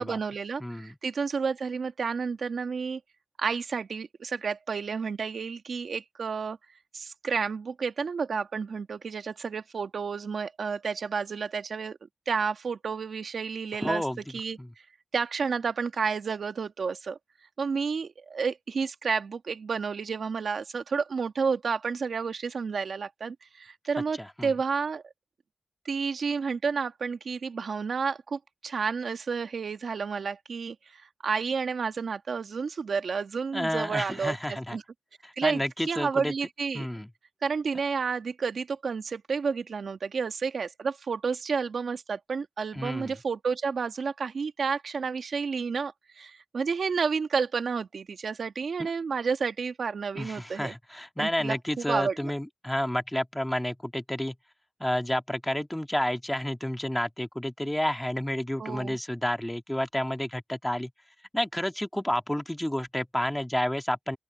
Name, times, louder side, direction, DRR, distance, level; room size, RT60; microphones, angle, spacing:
voice 1, 0.0-3.0 3.4-6.6 6.9-12.0 12.2-14.0 14.3-14.6 15.1-17.2 17.6-25.0 25.8-34.8 35.4-36.9 37.4-50.7 51.2-52.3 58.6-59.0, right 5 dB, 80° right, 1.7 m, -31 dB
voice 2, 0.6-1.0 13.8-14.2 14.6-14.7 24.2-24.5 33.5-34.8 35.2-36.3 36.7-37.1 42.7-43.1 48.8-48.9 50.2-54.4 54.8-60.9 61.3-64.2, left 1 dB, 5° left, 1.9 m, -30 dB
open air
wide cardioid pair, 115°, 0 cm